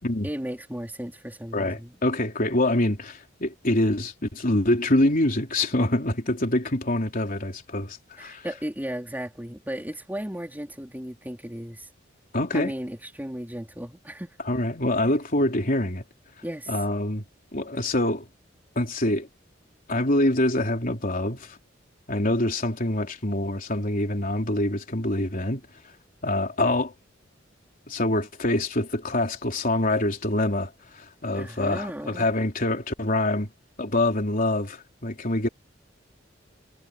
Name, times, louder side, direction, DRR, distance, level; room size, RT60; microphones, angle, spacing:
voice 1, 0.2-2.0 8.2-11.9 12.5-14.4 16.4-16.7 31.4-32.3, equal, 10° right, 4.1 m, -35 dB
voice 2, 1.5-8.5 12.3-12.7 14.5-16.0 16.7-17.2 17.5-18.3 18.8-19.3 19.9-21.6 22.1-25.6 26.2-26.9 27.9-33.5 33.8-35.5, left 1 dB, 45° left, 3.8 m, -25 dB
head